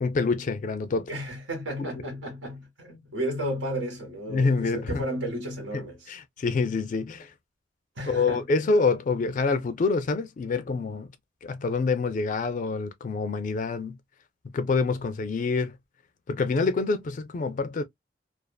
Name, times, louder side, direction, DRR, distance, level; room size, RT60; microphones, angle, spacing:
voice 1, 0.0-1.1 1.8-1.9 4.3-5.1 5.7-5.8 6.1-7.3 8.1-11.1 11.4-14.0 14.5-15.8 16.3-17.8, left 4 dB, 40° left, 0.3 m, -26 dB
voice 2, 1.1-6.1 8.0-8.4, right 1 dB, 80° right, 1.2 m, -33 dB
2.5 x 2.4 x 2.2 m
head